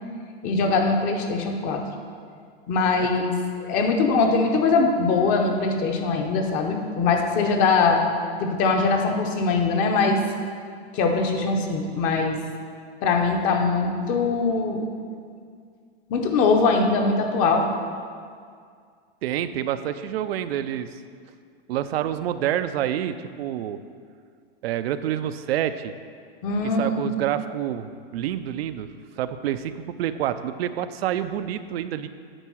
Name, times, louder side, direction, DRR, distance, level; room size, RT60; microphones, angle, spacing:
voice 1, 0.4-1.8 2.7-8.0 8.4-10.2 10.9-12.4 13.0-14.9 16.1-17.7 26.4-27.1, left 4 dB, 25° left, 3 dB, 0.7 m, -22 dB
voice 2, 19.2-20.9 21.7-23.8 24.6-25.9 26.6-28.9 29.2-32.1, right 11 dB, 75° right, 11 dB, 0.5 m, -28 dB
9.1 x 4.6 x 6.2 m, 2.1 s
supercardioid pair, 165°, 31 cm